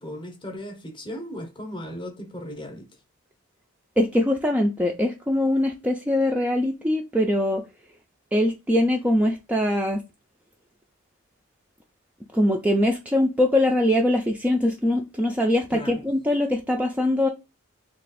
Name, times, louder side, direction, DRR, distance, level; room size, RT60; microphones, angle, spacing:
voice 1, 0.0-2.9 15.7-16.0, equal, 20° left, 0.7 m, -36 dB
voice 2, 4.0-7.6 8.3-10.0 12.3-17.3, left 1 dB, 5° right, 0.3 m, -22 dB
3.0 x 2.3 x 4.1 m
head